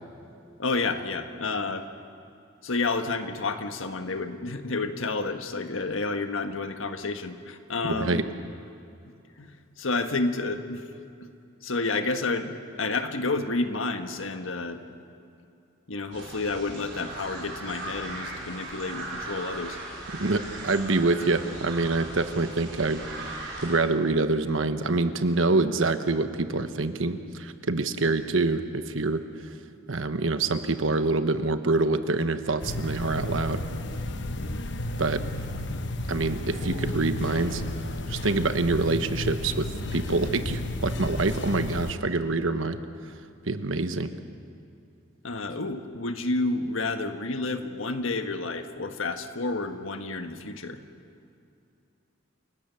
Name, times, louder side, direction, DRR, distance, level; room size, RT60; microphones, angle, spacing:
voice 1, 0.6-1.9 2.6-8.2 9.4-9.5 9.8-10.8 11.6-14.8 15.9-19.8 34.3-34.7 35.7-35.9 45.2-50.8, left 3 dB, 85° left, 7 dB, 1.5 m, -30 dB
voice 2, 7.8-8.2 20.2-23.0 23.3-29.2 29.9-33.6 35.0-35.2 36.1-37.6 38.1-42.8 43.5-44.1, right 3 dB, 75° right, 9 dB, 1.2 m, -26 dB
sound 1, 16.1-23.8, right 2 dB, 60° right, 6.5 m, -38 dB
sound 2, 32.6-41.9, left 1 dB, 60° left, 1.1 m, -32 dB
28.5 x 17.5 x 7.0 m, 2.5 s
head